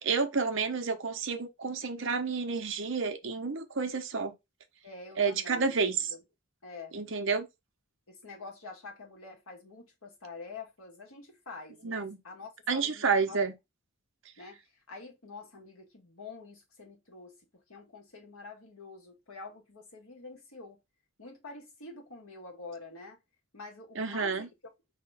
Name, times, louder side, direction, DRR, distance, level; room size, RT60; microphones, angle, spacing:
voice 1, 0.0-4.3 5.2-6.1 6.9-7.5 11.8-12.2 12.7-13.5 24.0-24.5, right 5 dB, 60° right, 0.8 m, -30 dB
voice 2, 4.8-6.2 6.6-6.9 8.1-13.4 14.4-20.8 21.2-23.2 23.5-24.5, left 3 dB, 80° left, 1.6 m, -47 dB
4.9 x 3.0 x 3.4 m
head